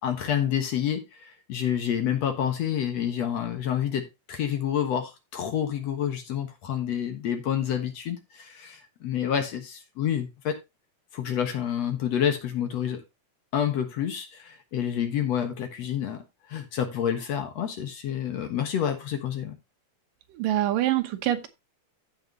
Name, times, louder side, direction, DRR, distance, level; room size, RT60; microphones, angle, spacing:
voice 1, 0.0-10.6 11.1-13.0 13.5-16.2 16.5-19.6, left 9 dB, 60° left, 2.3 m, -28 dB
voice 2, 20.4-21.5, right 13 dB, 85° right, 2.7 m, -25 dB
14.5 x 5.9 x 2.9 m
omnidirectional pair, 3.8 m